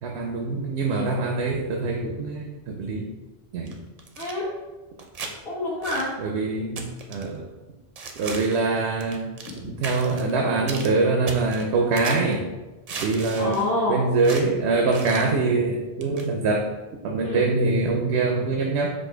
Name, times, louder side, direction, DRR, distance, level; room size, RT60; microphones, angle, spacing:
voice 1, 0.0-3.1 3.5-3.8 6.2-7.4 8.2-9.2 9.6-12.4 13.0-13.6 13.9-16.7 17.0-18.9, right 3 dB, 90° right, 1 dB, 0.9 m, -24 dB
sound 1, 3.7-4.3 5.0-5.3 5.8-6.1 6.8-7.3 8.0-8.7 9.0-9.6 9.8-10.3 10.7-10.9 11.3-12.3 12.9-13.7 14.2-14.5 14.9-15.3 16.0-16.3, right 4 dB, 50° right, 0.5 m, -36 dB
voice 2, 4.2-4.5 5.4-6.1 9.5-9.7 13.4-14.0 17.2-17.4, left 2 dB, 65° left, -7 dB, 1.0 m, -27 dB
4.3 x 2.6 x 4.3 m, 1.2 s
omnidirectional pair, 1.1 m